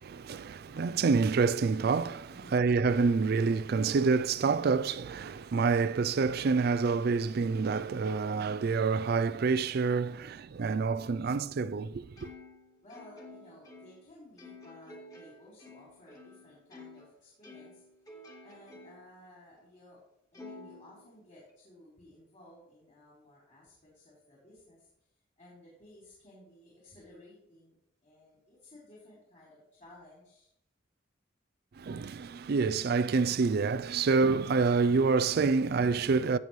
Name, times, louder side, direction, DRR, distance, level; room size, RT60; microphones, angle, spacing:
voice 1, 0.0-12.3 31.8-36.4, right 4 dB, 55° right, 0.4 m, -27 dB
voice 2, 2.3-2.7 12.8-17.8 18.4-20.0 20.3-24.9 25.4-27.8 28.0-30.5, left 1 dB, 45° left, 3.8 m, -56 dB
Plucked string instrument, 12.2-17.1 17.4-19.1 19.6-19.7 20.3-21.5, left 2 dB, 20° left, 1.9 m, -51 dB
16.5 x 6.9 x 3.2 m
head